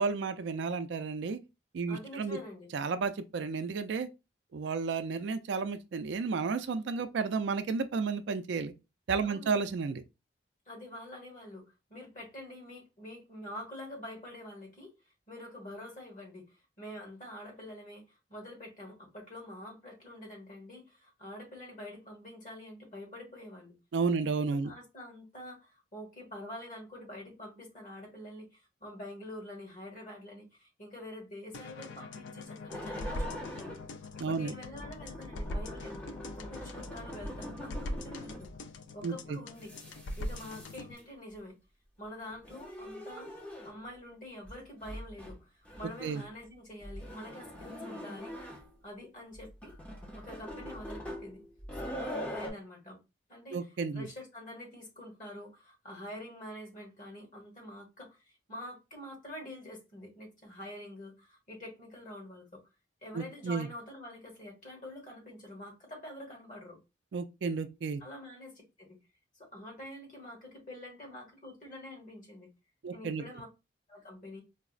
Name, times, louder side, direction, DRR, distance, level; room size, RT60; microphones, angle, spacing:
voice 1, 0.0-1.4 1.7-2.4 2.7-4.1 4.5-8.7 9.1-10.0 23.9-24.7 34.2-34.5 39.0-39.4 46.0-46.2 53.5-54.1 63.1-63.7 67.1-68.0 72.8-73.2, right 5 dB, 70° right, 0.4 m, -32 dB
voice 2, 1.9-2.7 9.2-9.6 10.7-23.7 24.2-33.8 34.1-36.1 36.4-38.5 38.9-39.7 40.2-41.6 42.0-48.3 48.8-49.7 50.1-51.4 51.8-53.0 53.3-53.7 53.9-62.6 63.0-66.8 68.0-69.0 69.4-72.5 72.9-73.5 73.9-74.4, left 1 dB, 45° left, 1.3 m, -46 dB
sound 1, 31.5-40.9, left 1 dB, 80° left, 0.3 m, -42 dB
sound 2, 32.7-33.9 34.6-38.6 39.5-41.0 42.3-43.9 44.4-44.6 44.8-45.4 45.6-46.3 46.8-48.8 49.3-52.5, equal, 5° left, 0.5 m, -43 dB
4.5 x 2.0 x 2.4 m
head